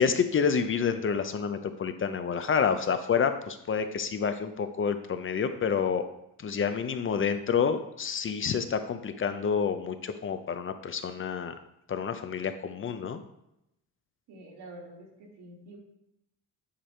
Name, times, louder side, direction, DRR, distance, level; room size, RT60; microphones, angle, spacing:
voice 1, 0.0-6.0 6.4-11.5 11.9-13.2, left 6 dB, 35° left, 9 dB, 0.5 m, -28 dB
voice 2, 14.3-15.8, right 1 dB, 85° right, -2 dB, 2.4 m, -47 dB
8.8 x 3.4 x 4.4 m, 0.84 s
cardioid pair, 110°, 38 cm